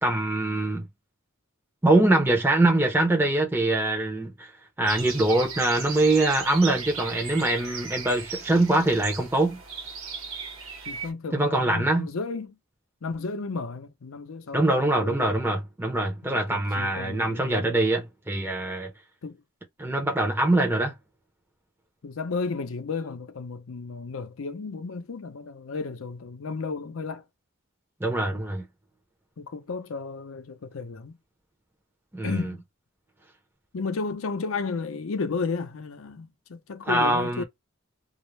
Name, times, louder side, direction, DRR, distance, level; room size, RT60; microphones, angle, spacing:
voice 1, 0.0-0.9 1.8-4.5 4.8-9.6 11.3-12.1 14.5-18.9 19.8-20.9 28.0-28.6 32.1-32.4 36.9-37.4, right 2 dB, 10° right, 0.6 m, -23 dB
sound 1, 4.8-11.1, right 5 dB, 70° right, 1.0 m, -37 dB
voice 2, 10.9-12.6 13.0-15.3 16.2-17.9 19.2-19.4 22.0-27.2 28.3-28.5 29.4-31.2 32.2-32.6 33.7-37.4, left 4 dB, 75° left, 0.6 m, -33 dB
2.4 x 2.0 x 3.1 m
head